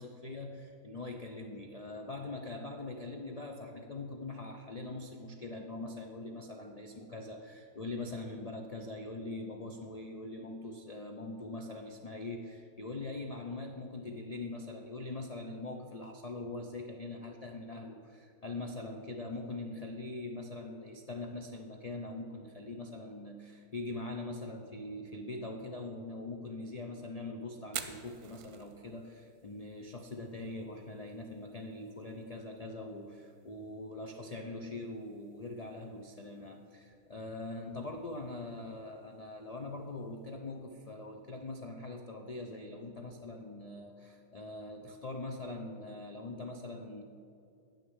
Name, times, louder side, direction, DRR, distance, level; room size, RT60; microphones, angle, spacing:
voice 1, 0.0-47.0, left 2 dB, 80° left, 4 dB, 0.3 m, -42 dB
Fire, 27.6-41.5, right 9 dB, 90° right, 1.2 m, -53 dB
8.6 x 6.4 x 7.9 m, 2.5 s
omnidirectional pair, 1.6 m